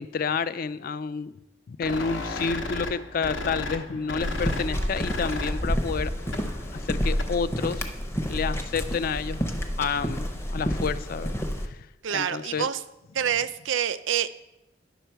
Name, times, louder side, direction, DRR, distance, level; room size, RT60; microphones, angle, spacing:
voice 1, 0.0-1.3 1.7-6.1 6.7-7.9 8.3-9.5 9.8-11.4 11.6-11.9 12.1-12.7, left 5 dB, 50° left, 15 dB, 0.3 m, -29 dB
sound 1, 1.8-7.5, left 2 dB, 75° left, 0.9 m, -35 dB
sound 2, 4.2-11.7, equal, 15° left, 0.6 m, -29 dB
voice 2, 12.0-12.8 13.1-14.3, right 8 dB, 80° right, 14 dB, 0.5 m, -27 dB
10.0 x 5.9 x 4.5 m, 0.93 s
head